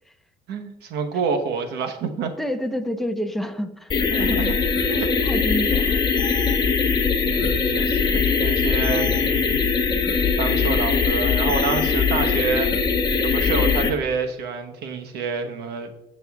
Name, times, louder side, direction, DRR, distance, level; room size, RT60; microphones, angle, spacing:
voice 1, 0.5-2.3 4.1-4.5 4.8-5.5 7.2-9.6 10.4-12.7 13.2-15.9, right 5 dB, 75° right, 6 dB, 1.1 m, -28 dB
voice 2, 2.4-3.9 4.2-4.4 5.2-6.0, equal, ahead, 6 dB, 0.8 m, -28 dB
sound 1, 3.9-13.9, left 5 dB, 25° left, 1.4 m, -21 dB
15.5 x 6.6 x 2.4 m, 0.97 s
cardioid pair, 110°, 17 cm